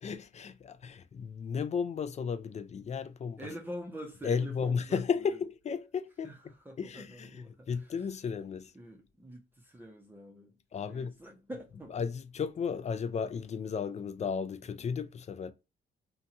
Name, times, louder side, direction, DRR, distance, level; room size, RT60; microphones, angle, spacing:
voice 1, 0.0-3.4 4.2-6.3 6.8-8.7 10.7-11.2 11.9-15.5, left 6 dB, 35° left, 0.4 m, -34 dB
voice 2, 3.4-5.4 6.2-8.0 8.7-10.6 10.9-12.0, equal, 10° right, 0.6 m, -46 dB
2.7 x 2.3 x 2.7 m
cardioid pair, 90°, 20 cm